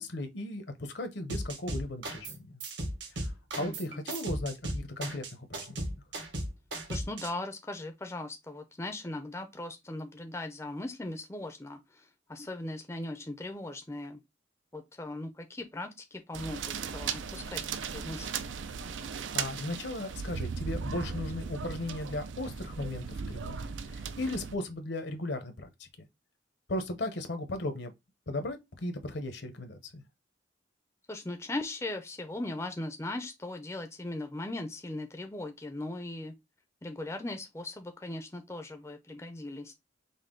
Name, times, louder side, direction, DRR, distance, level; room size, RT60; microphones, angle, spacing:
voice 1, 0.0-2.6 3.5-5.8 19.3-26.1 26.7-27.9 28.3-30.0, left 1 dB, 70° left, 0.8 m, -36 dB
sound 1, 1.3-2.4 2.6-7.3, right 1 dB, 75° right, 1.2 m, -35 dB
voice 2, 3.6-4.0 6.9-14.2 14.7-18.5 31.1-36.3 36.8-39.7, left 2 dB, 15° left, 0.4 m, -39 dB
sound 2, 16.3-24.6, right 6 dB, 90° right, 0.5 m, -37 dB
5.3 x 2.2 x 3.7 m
head